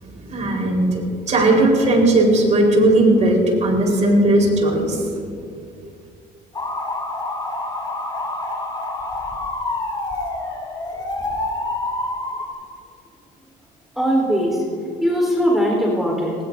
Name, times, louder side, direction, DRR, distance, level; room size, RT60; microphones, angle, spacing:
voice 1, 0.0-5.1, right 1 dB, 45° right, 0 dB, 4.2 m, -17 dB
sound 1, 6.5-12.5, left 2 dB, 25° left, 3.1 m, -27 dB
voice 2, 14.0-14.6 15.0-16.4, equal, ahead, -2 dB, 3.9 m, -19 dB
20.5 x 19.0 x 2.7 m, 2.3 s
cardioid pair, 110°, 17 cm